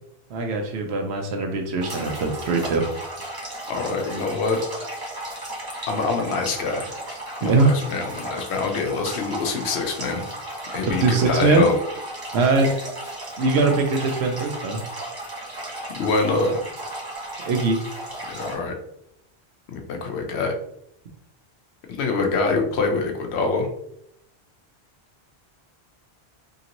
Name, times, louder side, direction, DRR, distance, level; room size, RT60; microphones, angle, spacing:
voice 1, 0.3-2.8 7.4-7.7 11.0-11.7 12.3-12.7 13.4-14.8 17.4-17.8, right 3 dB, 80° right, 4 dB, 0.9 m, -21 dB
sound 1, 1.8-18.5, right 1 dB, 25° right, 0.8 m, -35 dB
voice 2, 3.7-4.6 5.9-6.9 7.4-10.2 10.7-11.7 15.9-16.6 18.3-18.7 19.7-20.6 22.0-23.7, left 3 dB, 85° left, 4 dB, 0.9 m, -25 dB
2.9 x 2.5 x 2.9 m, 0.76 s
omnidirectional pair, 1.1 m